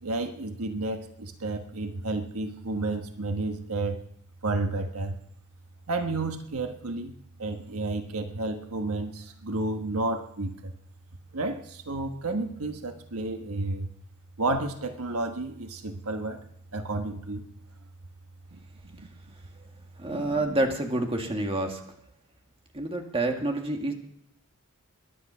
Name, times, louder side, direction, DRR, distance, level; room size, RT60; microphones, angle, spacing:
voice 1, 0.0-4.0 4.4-5.2 5.9-10.7 11.3-13.9 14.4-16.4 16.7-17.4 18.5-19.1 20.1-20.6, right 2 dB, 85° right, 6 dB, 1.3 m, -31 dB
voice 2, 20.0-21.8 22.7-23.9, right 2 dB, 25° right, 3 dB, 2.0 m, -28 dB
21.0 x 10.5 x 5.6 m, 0.72 s
head